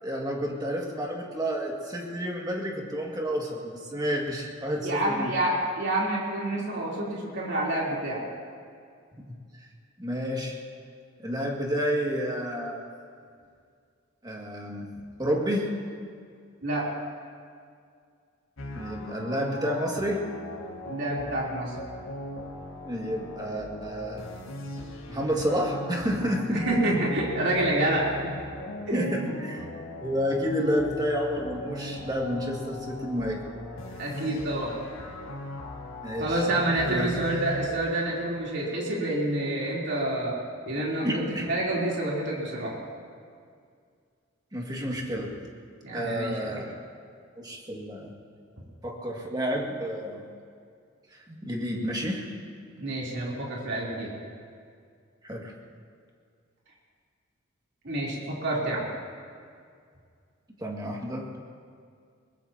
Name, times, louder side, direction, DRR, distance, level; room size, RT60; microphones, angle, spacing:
voice 1, 0.0-5.3 9.2-9.3 10.0-10.6 11.2-12.9 14.2-15.7 18.7-20.2 22.9-24.2 25.1-26.7 28.7-29.6 30.0-33.4 36.0-36.4 36.9-37.1 41.0-41.5 44.5-45.3 45.9-46.7 47.4-48.1 48.8-50.2 51.1-52.3 55.2-55.5 60.6-61.3, equal, 20° right, -1 dB, 2.2 m, -30 dB
voice 2, 4.8-8.2 16.6-16.9 20.8-21.7 26.5-28.1 28.9-29.3 34.0-34.8 36.2-40.3 40.7-41.2 41.5-42.7 45.8-46.6 52.8-54.2 57.8-58.9, right 1 dB, 60° right, -5 dB, 3.6 m, -28 dB
sound 1, 18.6-37.7, left 1 dB, 80° left, 1.9 m, -39 dB
21.5 x 20.5 x 3.0 m, 2.2 s
head